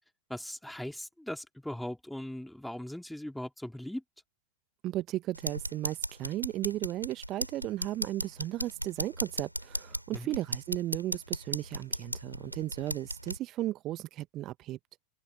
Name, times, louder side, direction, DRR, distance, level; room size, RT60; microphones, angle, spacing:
voice 1, 0.3-4.0 10.1-10.3, left 1 dB, ahead, 3.4 m, -39 dB
voice 2, 4.8-14.8, right 15 dB, 35° right, 1.0 m, -35 dB
sound 1, 5.3-13.4, equal, 90° right, 2.8 m, -37 dB
figure-of-eight pair, 90°, 0 cm